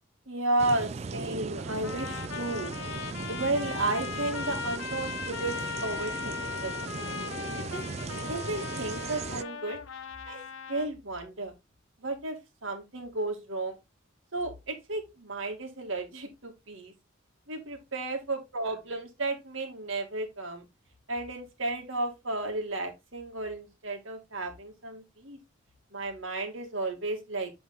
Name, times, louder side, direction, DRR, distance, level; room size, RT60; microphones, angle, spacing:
voice 1, 0.3-2.7 3.3-7.0 7.7-9.8 10.3-10.4 10.7-11.5 12.0-13.8 14.3-16.9 17.5-20.6 21.1-25.4 25.9-27.5, right 2 dB, 85° right, 1.8 m, -33 dB
sound 1, 0.6-9.4, right 4 dB, 35° right, 0.3 m, -37 dB
Trumpet, 1.8-10.9, left 6 dB, 90° left, 0.7 m, -38 dB
8.1 x 3.5 x 3.7 m
head